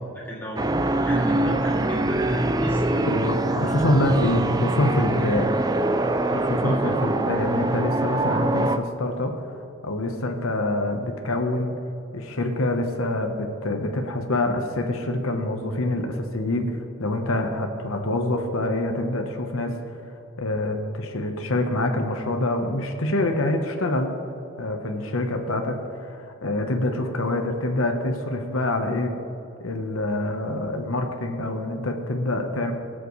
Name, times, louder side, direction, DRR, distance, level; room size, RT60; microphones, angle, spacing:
voice 1, 0.2-3.1 6.6-7.0, equal, 10° left, -7 dB, 2.6 m, -36 dB
sound 1, 0.6-8.8, right 1 dB, 20° right, 0.4 m, -23 dB
voice 2, 3.1-5.5 6.3-11.7 12.1-19.7 20.4-24.1 24.6-29.1 29.6-32.7, left 1 dB, 75° left, 4 dB, 1.0 m, -26 dB
23.0 x 7.8 x 3.2 m, 2.8 s
head